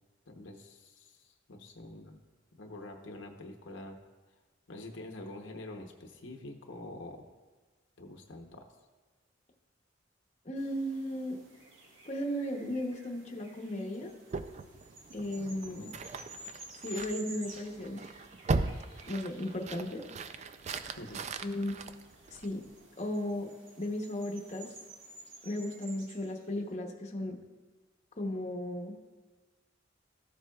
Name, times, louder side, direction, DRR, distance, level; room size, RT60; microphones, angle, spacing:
voice 1, 0.3-2.2 2.6-4.0 4.7-7.2 8.0-8.7 15.7-16.0 21.0-21.2, left 2 dB, 75° left, 3 dB, 0.9 m, -46 dB
voice 2, 10.4-11.4 12.0-14.2 15.1-15.9 16.8-18.1 19.1-20.0 21.4-21.8 22.3-22.6 23.0-23.5 23.8-24.7 25.4-27.4 28.2-29.0, left 1 dB, 35° left, 0 dB, 0.9 m, -35 dB
sound 1, 10.6-26.7, right 2 dB, 85° right, 1.4 m, -53 dB
sound 2, 14.3-22.8, right 3 dB, 35° right, 0.3 m, -39 dB
14.0 x 7.5 x 2.3 m, 1.3 s
head